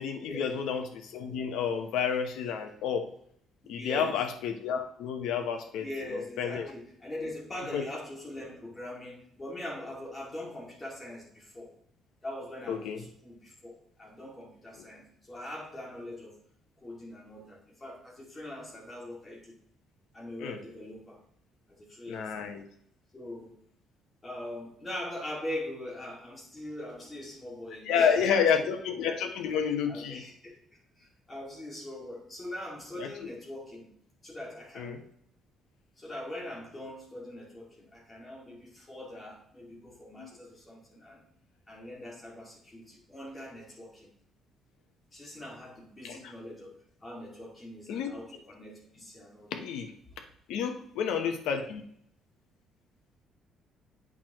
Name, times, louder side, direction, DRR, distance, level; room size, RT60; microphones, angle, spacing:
voice 1, 0.0-3.1 3.7-6.7 7.7-7.8 12.7-13.0 14.8-14.9 20.4-20.6 22.1-22.7 27.9-30.2 33.0-33.1 34.8-35.0 40.2-40.3 46.0-46.3 47.9-48.2 49.5-49.9 50.5-51.8, left 7 dB, 85° left, 6 dB, 1.0 m, -30 dB
voice 2, 3.6-4.2 5.8-11.7 12.2-16.4 16.8-19.6 20.1-21.2 21.8-22.4 23.1-23.6 24.2-29.0 29.9-30.6 31.0-33.9 34.2-35.0 36.0-41.2 41.7-44.1 45.1-49.5, left 1 dB, 15° left, -3 dB, 2.3 m, -42 dB
8.4 x 6.1 x 3.0 m, 0.68 s
cardioid pair, 165°, 0 cm